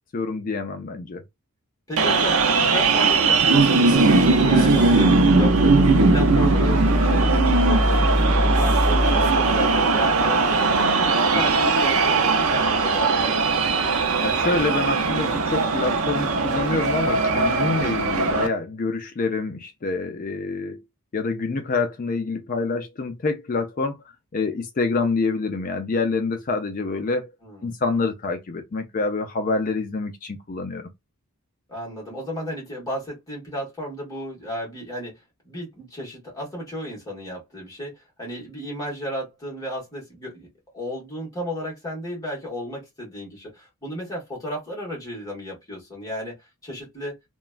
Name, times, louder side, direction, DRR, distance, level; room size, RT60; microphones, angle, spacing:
voice 1, 0.1-1.2 14.2-20.8 21.1-24.0 24.3-27.3 27.6-30.9, left 3 dB, 40° left, 0.4 m, -26 dB
voice 2, 1.9-10.9 11.2-13.7 27.4-27.8 31.7-35.2 35.4-40.5 40.7-47.2, equal, 15° left, 1.4 m, -34 dB
sound 1, 2.0-18.5, right 3 dB, 70° right, 0.5 m, -20 dB
sound 2, 3.9-11.0, equal, 10° right, 0.7 m, -24 dB
3.0 x 2.2 x 2.3 m
head